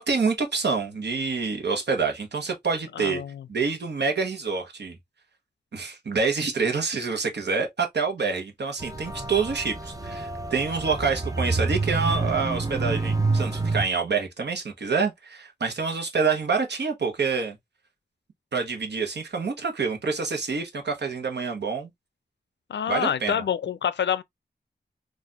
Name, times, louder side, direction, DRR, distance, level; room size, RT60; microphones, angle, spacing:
voice 1, 0.0-3.2 3.5-5.0 5.7-17.6 18.5-21.9 22.9-23.4, right 5 dB, 70° right, 1.0 m, -27 dB
voice 2, 3.0-3.5 22.7-24.2, left 8 dB, 80° left, 0.4 m, -27 dB
sound 1, 8.8-13.9, right 3 dB, 20° right, 0.5 m, -28 dB
4.1 x 2.5 x 2.3 m
wide cardioid pair, 105°, 18 cm